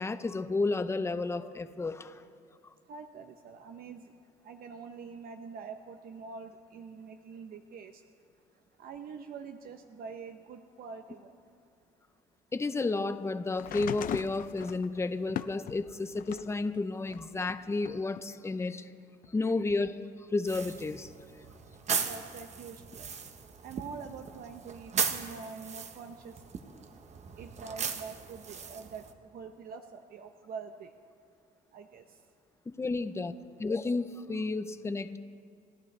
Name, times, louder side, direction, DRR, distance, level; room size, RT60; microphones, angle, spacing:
voice 1, 0.0-2.2 12.5-18.9 19.3-21.1 32.7-33.3 33.6-35.2, left 3 dB, 15° left, 11 dB, 0.7 m, -32 dB
voice 2, 2.9-4.0 4.4-8.0 8.8-11.3 22.1-23.1 23.6-26.3 27.4-29.0 29.3-30.9 31.7-32.0, right 5 dB, 60° right, 6 dB, 0.8 m, -45 dB
sound 1, 13.5-16.6 17.1-18.2 19.2-19.3, left 11 dB, 55° left, 0.5 m, -39 dB
sound 2, 20.5-29.1, right 6 dB, 40° right, 1.1 m, -37 dB
30.0 x 13.5 x 3.3 m, 2.2 s
cardioid pair, 110°, 17 cm